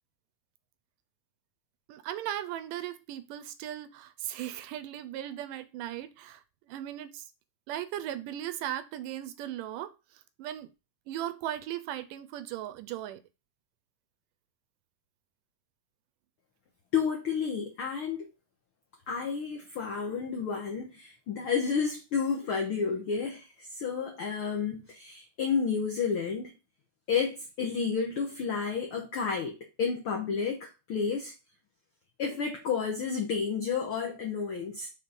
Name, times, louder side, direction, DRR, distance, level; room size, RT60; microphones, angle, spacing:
voice 1, 1.9-7.3 7.7-9.9 10.4-10.7 11.1-13.2, right 12 dB, 80° right, 2.1 m, -37 dB
voice 2, 16.9-18.3 19.1-26.5 27.1-31.3 32.2-34.9, left 6 dB, 85° left, 1.1 m, -31 dB
6.2 x 3.9 x 4.0 m
omnidirectional pair, 4.0 m